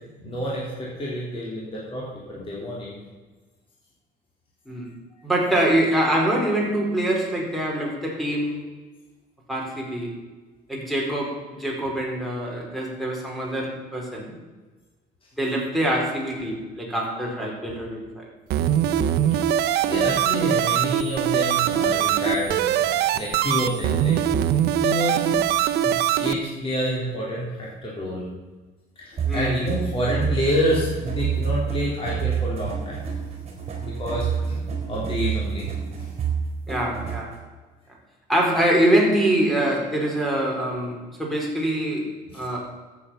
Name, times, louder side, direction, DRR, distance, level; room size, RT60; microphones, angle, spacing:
voice 1, 0.2-2.9 19.9-24.2 24.8-25.4 25.8-28.2 29.0-33.0 33.8-34.6 34.9-35.7 36.0-36.1, equal, 35° left, -5 dB, 3.4 m, -28 dB
voice 2, 5.2-8.6 9.5-10.1 10.7-14.4 15.4-18.2 29.2-29.6 36.7-37.3 38.3-42.6, right 1 dB, ahead, -2 dB, 4.2 m, -24 dB
sound 1, 18.5-26.3, right 10 dB, 75° right, 0.7 m, -22 dB
sound 2, 29.2-37.4, right 7 dB, 35° right, 3.6 m, -28 dB
13.5 x 8.6 x 5.7 m, 1.3 s
cardioid pair, 110°, 17 cm